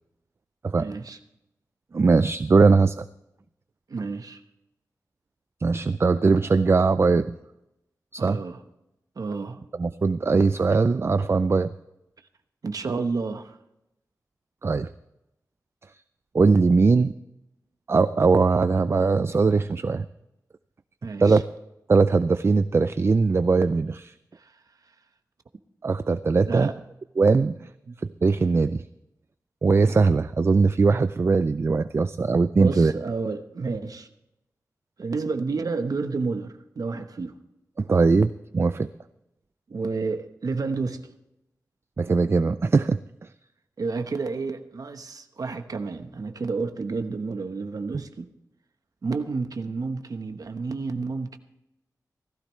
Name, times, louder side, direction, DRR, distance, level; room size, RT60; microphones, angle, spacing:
voice 1, 0.8-1.2 3.9-4.4 8.2-8.6 9.2-9.6 12.6-13.6 21.0-21.4 24.4-24.6 26.5-26.8 27.9-28.0 32.6-34.1 35.0-37.4 39.7-41.1 43.8-48.3 49.0-51.4, right 4 dB, 65° right, 1.1 m, -30 dB
voice 2, 1.9-3.0 5.6-7.3 8.1-8.4 9.8-11.7 14.6-14.9 16.3-17.1 17.9-20.1 21.2-21.4 21.9-24.1 25.8-26.7 27.2-27.7 28.2-28.8 29.6-32.9 37.8-38.9 42.0-43.3, right 4 dB, 40° right, 0.4 m, -20 dB
17.0 x 15.0 x 3.2 m
wide cardioid pair, 100°, 7 cm